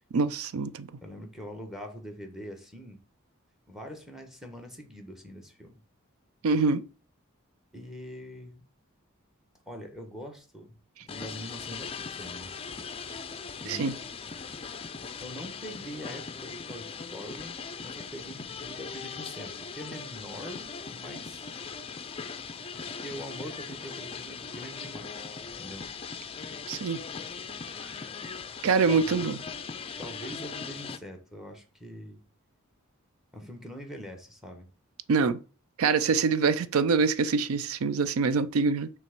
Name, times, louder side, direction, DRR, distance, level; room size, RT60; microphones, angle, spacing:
voice 1, 0.1-0.9 6.4-6.8 13.7-13.9 26.7-27.0 28.6-29.4 35.1-35.4 35.8-38.9, right 4 dB, 85° right, 0.4 m, -25 dB
voice 2, 1.0-3.0 3.7-5.7 7.7-8.6 9.7-12.5 13.6-14.0 15.2-21.6 22.7-25.3 25.6-25.9 28.9-29.2 30.0-32.2 33.3-34.7, equal, ahead, 1.2 m, -43 dB
sound 1, 11.1-31.0, left 5 dB, 25° left, 0.5 m, -39 dB
5.9 x 3.5 x 5.8 m
head